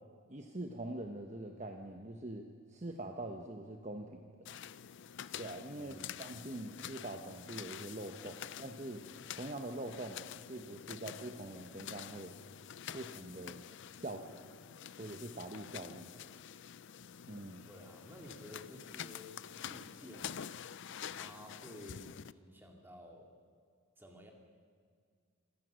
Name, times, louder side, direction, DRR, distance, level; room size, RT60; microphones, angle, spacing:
voice 1, 0.3-2.4 2.7-4.6 5.4-9.0 9.3-12.4 12.9-13.6 13.9-14.4 15.0-16.1 17.3-17.7, right 1 dB, 30° right, 4 dB, 1.1 m, -44 dB
sound 1, 4.5-22.3, left 9 dB, 55° left, 0.4 m, -48 dB
voice 2, 5.7-6.2 17.6-20.6 21.1-23.3 24.0-24.3, equal, 10° right, 1 dB, 2.5 m, -53 dB
26.0 x 17.5 x 6.4 m, 2.1 s
head